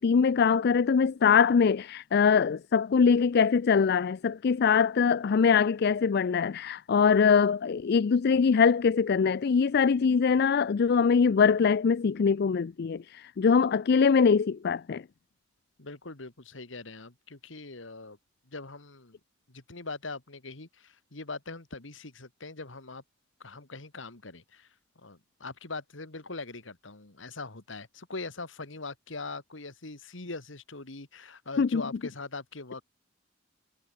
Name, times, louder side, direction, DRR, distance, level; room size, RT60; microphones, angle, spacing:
voice 1, 0.0-15.0 31.6-31.8, left 6 dB, 55° left, 0.4 m, -23 dB
voice 2, 15.8-18.2 18.5-19.2 19.5-23.0 23.4-24.7 25.0-32.8, left 3 dB, 75° left, 2.3 m, -41 dB
head